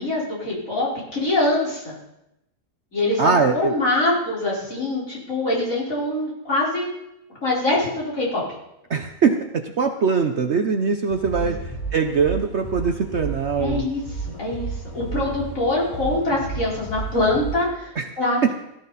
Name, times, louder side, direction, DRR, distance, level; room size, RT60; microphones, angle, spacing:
voice 1, 0.0-1.9 2.9-6.9 7.4-8.4 11.4-11.5 13.6-14.0 14.3-18.5, left 2 dB, 55° left, -5 dB, 4.8 m, -24 dB
voice 2, 3.2-3.8 8.9-13.8 18.0-18.1 18.4-18.5, right 5 dB, 50° right, 6 dB, 1.0 m, -22 dB
sound 1, 11.1-17.6, right 3 dB, 30° left, 2.9 m, -32 dB
16.5 x 13.5 x 4.1 m, 0.87 s
omnidirectional pair, 1.7 m